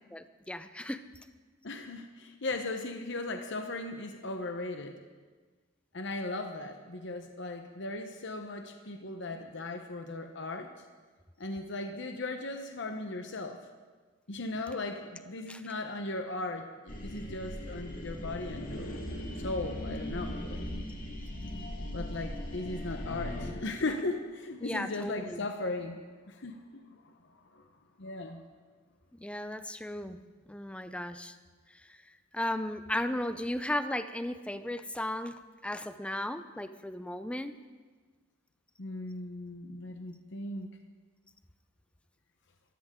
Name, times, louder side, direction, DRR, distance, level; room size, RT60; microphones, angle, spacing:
voice 1, 0.1-1.0 15.5-15.6 24.6-25.4 29.2-30.2 30.5-31.3 32.3-37.5, left 1 dB, 5° left, 10 dB, 0.6 m, -35 dB
voice 2, 1.6-5.0 5.9-10.7 11.4-13.6 14.3-16.7 17.0-18.9 19.4-20.6 21.9-26.0 26.3-27.6 28.0-28.4 38.8-40.7, left 2 dB, 65° left, 5 dB, 1.0 m, -37 dB
sound 1, 16.9-23.5, left 1 dB, 45° left, 2.1 m, -38 dB
23.5 x 14.5 x 3.8 m, 1.4 s
head